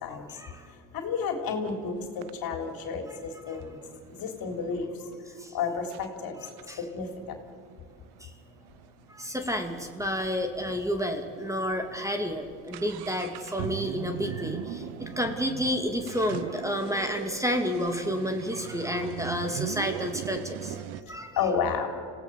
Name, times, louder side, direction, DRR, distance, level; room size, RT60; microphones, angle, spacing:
voice 1, 0.1-0.7 3.1-3.2 3.4-3.6 5.4-5.6 6.6-6.8 8.2-8.3 9.1-21.4, equal, 5° right, 5 dB, 2.4 m, -30 dB
voice 2, 0.9-3.8 4.1-4.9 5.5-6.4 6.8-7.4 21.1-21.9, left 6 dB, 55° left, 5 dB, 3.6 m, -31 dB
sound 1, 1.6-1.8 2.2-4.9 5.5-5.6 5.9-6.1 6.5-10.1 10.4-10.5 10.7-10.8 11.4-11.6 11.9-21.0, right 13 dB, 70° right, 1.0 m, -39 dB
27.0 x 17.0 x 7.0 m, 2.3 s
supercardioid pair, 80°, 41 cm